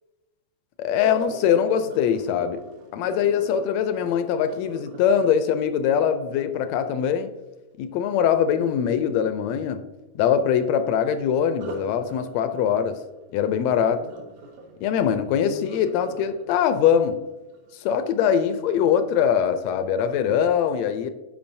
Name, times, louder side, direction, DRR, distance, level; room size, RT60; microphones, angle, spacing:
voice 1, 0.8-2.6 2.9-7.3 7.8-9.8 10.1-13.0 13.3-14.1 14.8-17.2 17.7-21.1, left 8 dB, 80° left, 1.6 m, -22 dB
Sink (filling or washing), 1.1-7.1 11.5-18.5 19.0-19.3 19.8-19.9, right 1 dB, 75° right, 2.2 m, -43 dB
10.5 x 4.6 x 2.6 m
omnidirectional pair, 3.4 m